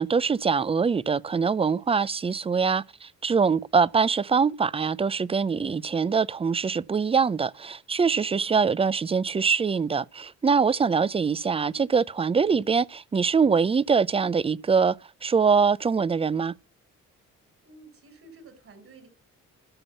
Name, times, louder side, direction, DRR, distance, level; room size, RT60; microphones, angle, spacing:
voice 1, 0.0-15.0 15.2-16.5, right 5 dB, 20° right, 0.5 m, -23 dB
voice 2, 8.3-8.7 17.6-19.1, right 3 dB, 45° right, 4.9 m, -51 dB
12.5 x 5.4 x 6.9 m
cardioid pair, 90°, 30 cm